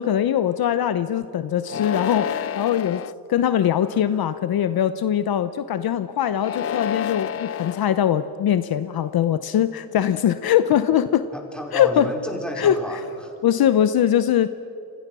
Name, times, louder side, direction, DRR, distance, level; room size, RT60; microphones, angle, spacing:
voice 1, 0.0-3.0 3.3-11.3 11.7-12.1 12.6-12.8 13.4-14.5, left 10 dB, 60° left, 12 dB, 0.9 m, -21 dB
sound 1, 1.6-3.1 3.8-4.4 6.3-7.8, left 8 dB, 35° left, 0.5 m, -29 dB
voice 2, 11.3-13.3, equal, ahead, 1 dB, 4.9 m, -32 dB
29.5 x 24.5 x 6.2 m, 2.9 s
cardioid pair, 130°, 41 cm